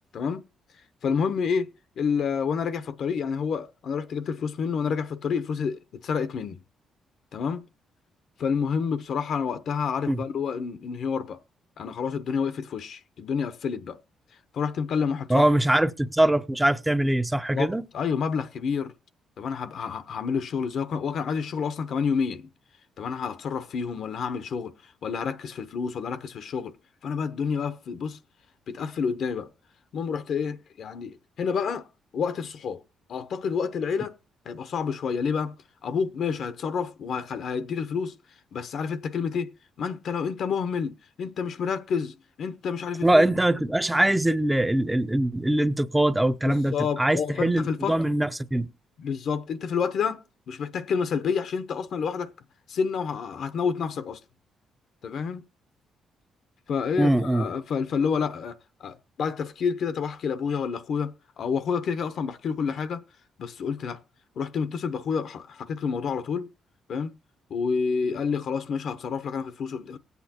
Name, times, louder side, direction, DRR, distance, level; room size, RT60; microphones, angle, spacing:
voice 1, 0.1-0.5 1.0-1.7 2.0-6.6 7.3-7.7 8.4-11.4 11.8-14.0 14.5-15.5 17.5-18.9 19.4-22.5 23.0-26.7 27.0-28.2 28.7-29.5 29.9-31.9 32.1-32.8 33.1-34.1 34.4-35.6 35.8-38.1 38.5-39.5 39.8-43.2 46.4-48.1 49.0-52.3 52.7-54.2 55.0-55.4 56.7-63.0 63.4-64.0 64.4-66.5 66.9-67.1 67.5-70.0, left 6 dB, 65° left, 0.9 m, -29 dB
voice 2, 15.3-17.8 43.0-48.7 57.0-57.5, right 1 dB, 10° right, 0.7 m, -22 dB
18.5 x 8.3 x 2.9 m
cardioid pair, 90°, 0 cm